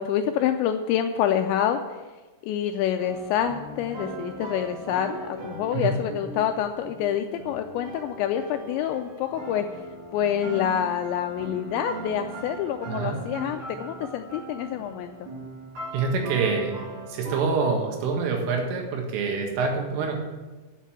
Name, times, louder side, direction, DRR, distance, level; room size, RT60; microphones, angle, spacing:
voice 1, 0.0-1.8 2.4-9.7 10.1-15.3, left 10 dB, 85° left, 6 dB, 2.6 m, -27 dB
sound 1, 3.0-17.5, right 3 dB, 55° right, 4.4 m, -39 dB
voice 2, 12.9-13.2 15.9-16.8 17.1-20.1, right 4 dB, 85° right, 2 dB, 4.2 m, -26 dB
8.3 x 7.4 x 8.7 m, 1.2 s
omnidirectional pair, 5.6 m